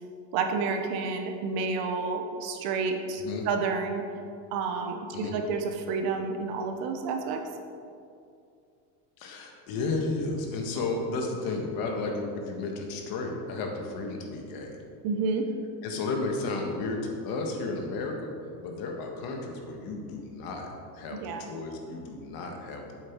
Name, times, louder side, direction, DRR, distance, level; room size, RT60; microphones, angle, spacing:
voice 1, 0.3-4.0 4.5-7.4 15.0-15.5 21.1-21.5, right 4 dB, 50° right, 5 dB, 1.0 m, -30 dB
voice 2, 9.2-14.7 15.8-18.3 18.6-20.7 20.9-22.9, left 3 dB, 45° left, 2 dB, 1.5 m, -33 dB
8.8 x 7.9 x 4.6 m, 2.4 s
supercardioid pair, 150°, 47 cm